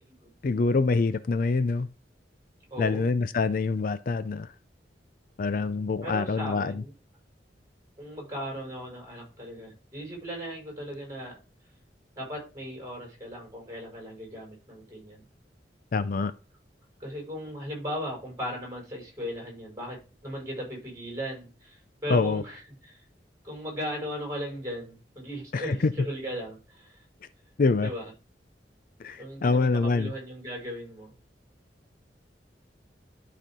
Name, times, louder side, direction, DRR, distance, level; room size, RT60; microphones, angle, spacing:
voice 1, 0.4-1.9 2.8-4.5 5.4-6.8 15.9-16.3 22.1-22.4 25.5-25.9 27.6-27.9 29.0-30.1, left 3 dB, 50° left, 0.4 m, -25 dB
voice 2, 2.7-3.1 6.0-6.9 8.0-11.4 12.2-15.2 17.0-23.0 23.4-27.0 27.8-28.1 29.2-31.1, equal, 20° right, 5.3 m, -37 dB
12.0 x 4.3 x 3.7 m
head